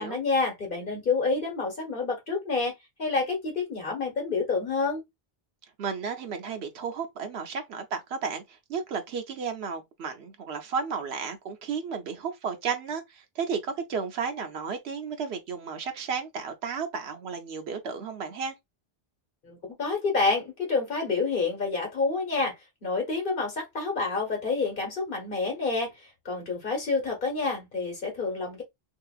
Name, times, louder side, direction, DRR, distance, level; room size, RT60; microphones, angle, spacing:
voice 1, 0.0-2.7 3.0-5.0 19.4-22.5 22.8-25.9 26.2-28.6, left 4 dB, 55° left, 1.4 m, -28 dB
voice 2, 5.8-18.5, right 5 dB, 90° right, 1.0 m, -33 dB
2.8 x 2.7 x 2.3 m
omnidirectional pair, 1.0 m